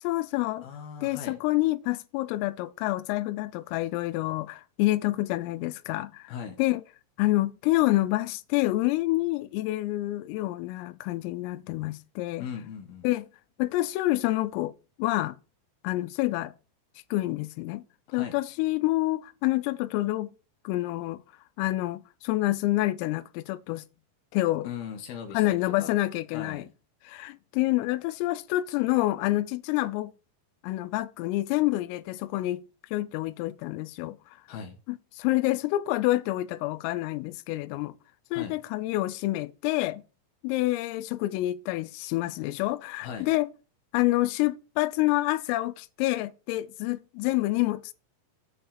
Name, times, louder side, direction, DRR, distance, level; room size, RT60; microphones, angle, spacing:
voice 1, 0.0-0.7 1.0-6.3 6.6-6.8 7.2-12.5 13.0-13.3 13.6-14.7 15.0-15.4 15.8-16.5 17.1-17.8 18.1-20.3 20.7-21.2 21.6-23.8 24.3-24.7 25.3-26.7 27.0-30.1 30.6-32.6 32.9-34.2 34.9-38.0 38.3-40.0 40.4-43.5 43.9-47.9, left 17 dB, 85° left, 3.3 m, -27 dB
voice 2, 0.6-1.4 6.3-6.6 12.4-13.1 18.1-18.4 24.6-26.0 26.3-26.7 34.5-34.8 38.3-38.5 43.0-43.3, left 7 dB, 60° left, 2.9 m, -39 dB
8.8 x 5.4 x 7.2 m
omnidirectional pair, 5.9 m